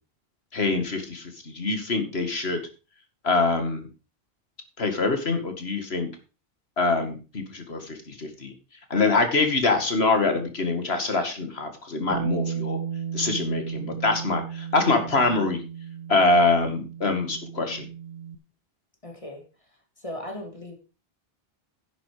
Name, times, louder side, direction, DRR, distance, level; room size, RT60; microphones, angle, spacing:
voice 1, 0.5-2.6 3.2-3.9 4.8-6.1 6.8-8.5 8.9-12.8 13.1-15.6 16.1-17.9, left 3 dB, 90° left, 6 dB, 2.4 m, -24 dB
Bass guitar, 12.1-18.4, right 8 dB, 35° right, 1.3 m, -34 dB
voice 2, 19.0-19.4 20.0-20.8, left 1 dB, 35° left, 2 dB, 2.9 m, -37 dB
10.5 x 8.6 x 5.0 m, 0.33 s
omnidirectional pair, 1.0 m